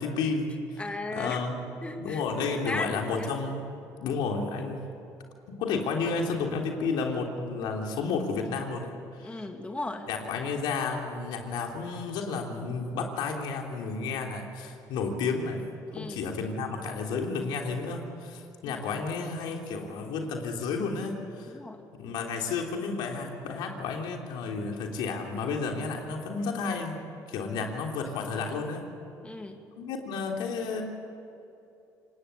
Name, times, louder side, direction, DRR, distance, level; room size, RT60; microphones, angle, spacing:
voice 1, 0.0-0.8 1.1-1.6 2.0-3.6 4.0-4.9 5.5-9.4 10.1-21.5 22.0-27.0 27.3-28.9 29.8-30.8, left 4 dB, 75° left, 1 dB, 3.5 m, -32 dB
voice 2, 0.8-1.4 1.8-2.2 2.7-3.4 9.2-10.1 15.9-16.2 18.6-18.8 21.5-21.8 29.2-29.6, left 2 dB, 15° left, 4 dB, 2.6 m, -36 dB
27.5 x 19.5 x 8.5 m, 2.8 s
supercardioid pair, 70°, 8 cm